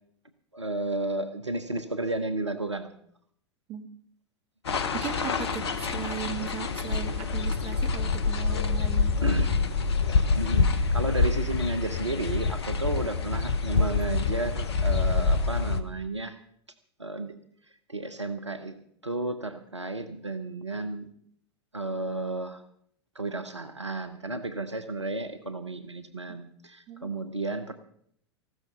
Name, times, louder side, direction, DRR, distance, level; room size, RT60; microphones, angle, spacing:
voice 1, 0.5-2.9 9.2-9.6 9.9-16.4 17.0-17.3 17.9-18.7 19.0-21.1 21.7-22.6 23.1-27.7, right 2 dB, 90° right, 10 dB, 1.1 m, -32 dB
sound 1, 4.6-15.8, left 4 dB, 70° left, 1.2 m, -26 dB
voice 2, 4.9-9.1 26.9-27.1, right 8 dB, 35° right, 7 dB, 2.0 m, -37 dB
15.5 x 12.5 x 5.5 m, 0.67 s
figure-of-eight pair, 90°, 14 cm